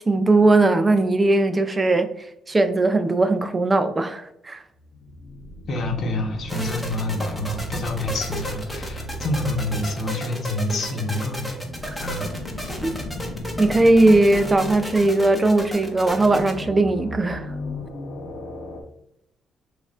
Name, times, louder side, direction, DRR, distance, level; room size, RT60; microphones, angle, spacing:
voice 1, 0.1-2.1 2.5-4.6 11.9-12.0 12.8-12.9 13.6-17.5, right 2 dB, 25° right, 9 dB, 0.3 m, -19 dB
sound 1, 4.8-18.8, left 1 dB, 90° left, 0.7 m, -36 dB
voice 2, 5.7-11.4 12.0-12.3, left 1 dB, 60° left, 3 dB, 0.9 m, -27 dB
sound 2, 6.5-16.6, equal, 5° left, 1.0 m, -33 dB
6.2 x 2.4 x 2.4 m, 0.81 s
cardioid pair, 90°, 0 cm